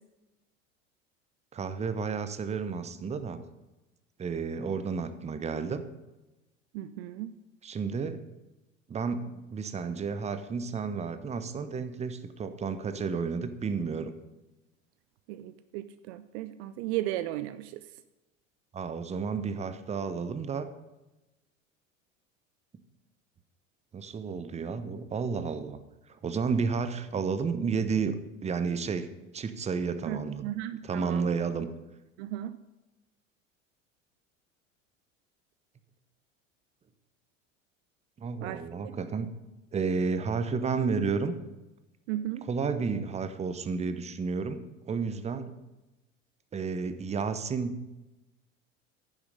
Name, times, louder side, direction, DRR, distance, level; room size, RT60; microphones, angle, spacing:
voice 1, 1.5-3.4 4.2-5.8 7.6-8.2 8.9-14.1 18.7-20.7 23.9-25.8 26.2-28.2 28.4-29.1 29.3-30.5 30.8-31.7 38.2-39.3 39.7-41.3 42.5-45.5 46.5-47.8, right 5 dB, 15° right, 11 dB, 0.7 m, -31 dB
voice 2, 6.7-7.3 15.3-17.8 30.1-31.3 32.2-32.6 38.4-38.6 42.1-42.5, right 14 dB, 55° right, 13 dB, 0.5 m, -35 dB
9.8 x 7.3 x 5.2 m, 1.0 s
hypercardioid pair, 80°, 39 cm